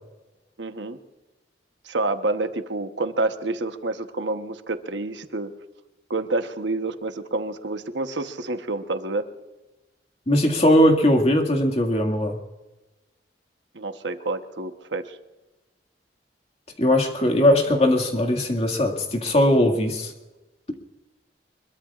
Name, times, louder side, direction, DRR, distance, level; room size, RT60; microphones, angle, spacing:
voice 1, 0.6-1.0 1.8-5.5 6.1-9.3 13.7-15.2, right 2 dB, 75° right, 8 dB, 1.1 m, -28 dB
voice 2, 10.3-12.4 16.8-20.1, left 1 dB, 35° left, 3 dB, 2.0 m, -19 dB
24.5 x 22.5 x 2.5 m, 1.1 s
head